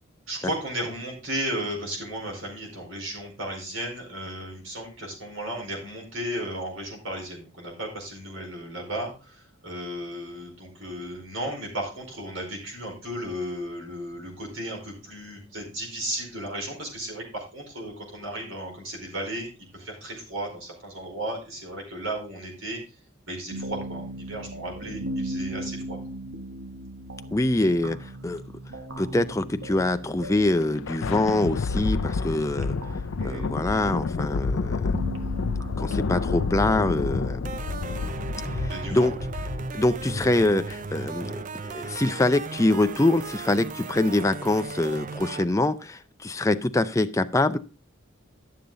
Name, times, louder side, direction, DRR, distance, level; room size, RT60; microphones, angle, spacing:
voice 1, 0.3-22.8 23.3-26.0 33.2-33.5 38.7-39.2, right 1 dB, 70° right, 0 dB, 4.7 m, -34 dB
sound 1, 23.5-36.8, right 1 dB, 90° right, 1.3 m, -38 dB
voice 2, 27.3-28.4 29.0-32.8 33.2-35.0 35.8-37.6 38.5-39.1 39.7-47.6, left 2 dB, 15° left, 10 dB, 0.5 m, -24 dB
Thunder, 30.4-41.2, left 4 dB, 70° left, 0.5 m, -29 dB
sound 2, 37.4-45.5, right 4 dB, 40° right, 0.4 m, -36 dB
11.5 x 7.1 x 3.9 m, 0.32 s
head